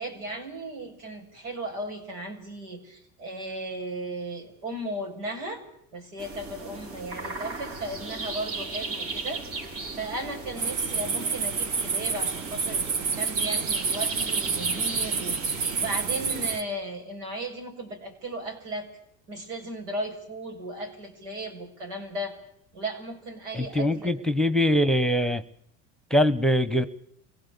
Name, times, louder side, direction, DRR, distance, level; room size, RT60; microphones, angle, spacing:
voice 1, 0.0-5.6 5.9-9.7 9.9-18.9 19.3-22.4 22.7-24.3, right 1 dB, 90° right, 2 dB, 7.6 m, -36 dB
sound 1, 6.2-16.6, right 3 dB, 65° right, 4.6 m, -36 dB
sound 2, 10.6-16.6, right 5 dB, 50° right, 1.9 m, -29 dB
voice 2, 23.5-25.4 26.1-26.9, left 1 dB, ahead, 13 dB, 1.2 m, -22 dB
24.5 x 18.0 x 8.5 m, 0.70 s
supercardioid pair, 110°, 36 cm